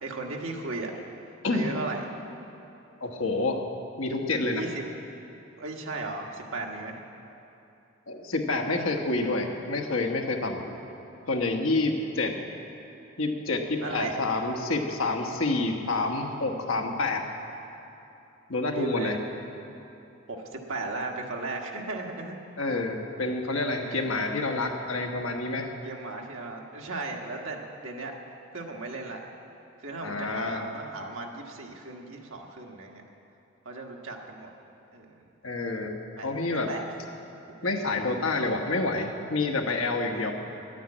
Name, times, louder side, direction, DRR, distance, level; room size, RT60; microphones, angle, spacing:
voice 1, 0.0-0.9 1.5-2.1 4.5-4.8 5.6-7.0 13.8-14.1 18.7-19.2 20.3-22.4 23.8-24.1 25.8-28.1 28.5-29.2 29.8-33.0 33.6-34.5 34.9-35.1 36.2-36.8 37.6-37.7 40.1-40.2, right 2 dB, 80° right, 1 dB, 1.4 m, -36 dB
voice 2, 3.0-3.6 4.0-4.7 8.1-10.7 11.3-12.3 13.2-17.2 18.5-19.2 22.6-25.7 30.0-30.6 35.4-36.7 37.6-40.3, left 2 dB, 85° left, 2 dB, 1.2 m, -28 dB
10.5 x 9.1 x 8.6 m, 2.9 s
head